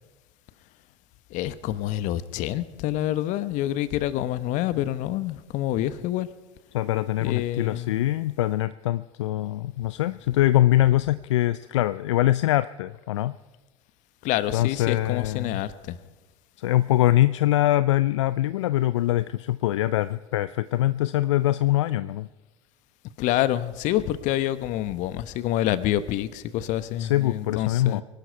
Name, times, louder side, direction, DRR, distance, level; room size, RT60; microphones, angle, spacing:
voice 1, 1.3-6.3 7.2-8.0 14.2-16.0 23.2-28.0, left 13 dB, 55° left, 15 dB, 1.1 m, -27 dB
voice 2, 6.7-13.4 14.5-15.6 16.6-22.3 27.0-28.0, left 14 dB, 75° left, 15 dB, 0.4 m, -23 dB
23.0 x 12.0 x 4.6 m, 1.2 s
hypercardioid pair, 75°, 15 cm